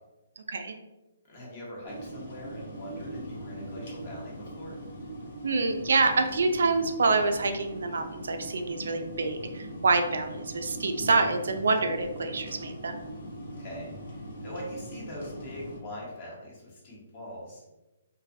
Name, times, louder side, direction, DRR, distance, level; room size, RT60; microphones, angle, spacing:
voice 1, 0.4-0.7 5.4-13.0, right 3 dB, 75° right, 6 dB, 0.3 m, -26 dB
voice 2, 1.3-4.8 13.6-17.7, left 1 dB, 35° left, -4 dB, 1.0 m, -42 dB
sound 1, 1.9-15.8, right 1 dB, 65° left, 0.8 m, -41 dB
2.5 x 2.3 x 2.5 m, 1.0 s
hypercardioid pair, 155°, 0 cm